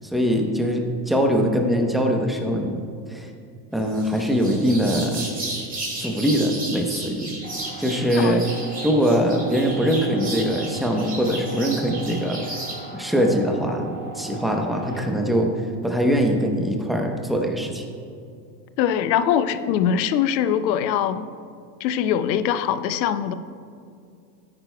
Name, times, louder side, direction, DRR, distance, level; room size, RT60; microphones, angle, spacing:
voice 1, 0.0-2.8 3.1-3.3 3.7-5.3 6.0-7.3 7.8-8.4 8.8-12.4 12.9-15.5 15.8-17.8, equal, ahead, 2 dB, 0.9 m, -22 dB
sound 1, 3.9-12.8, right 2 dB, 15° right, 2.5 m, -34 dB
sound 2, 7.4-15.1, right 2 dB, 20° left, 1.3 m, -39 dB
voice 2, 8.2-8.5 18.8-21.3 21.8-23.3, left 9 dB, 85° left, 13 dB, 0.7 m, -22 dB
13.5 x 9.6 x 2.3 m, 2.4 s
supercardioid pair, 115°, 50 cm